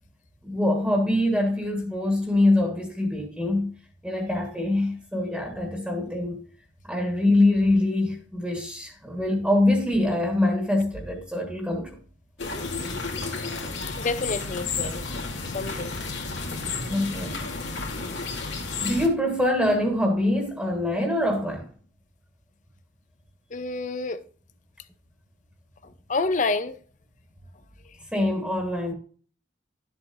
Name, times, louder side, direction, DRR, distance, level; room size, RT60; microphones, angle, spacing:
voice 1, 0.4-3.7 4.0-6.4 6.8-12.0 16.9-17.5 18.8-21.7 28.1-28.9, left 1 dB, 5° right, 1.6 m, -24 dB
sound 1, 12.4-19.1, left 4 dB, 75° left, 2.5 m, -32 dB
voice 2, 14.0-15.0 15.5-15.9 23.5-24.2 26.1-26.8, left 3 dB, 40° left, 0.6 m, -28 dB
12.5 x 7.8 x 2.6 m
head